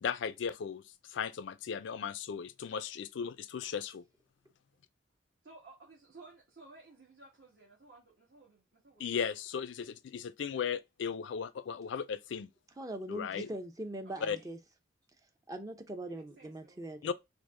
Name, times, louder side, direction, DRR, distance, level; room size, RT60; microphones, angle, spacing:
voice 1, 0.0-4.0 9.0-12.5 13.1-13.5 14.2-14.4 17.0-17.1, left 7 dB, 70° left, 0.4 m, -36 dB
voice 2, 5.4-9.2 13.4-13.6 14.0-14.5 16.1-16.9, right 3 dB, 55° right, 1.4 m, -57 dB
voice 3, 12.8-14.6 15.5-17.1, right 1 dB, 20° right, 0.5 m, -41 dB
4.9 x 2.1 x 3.5 m
head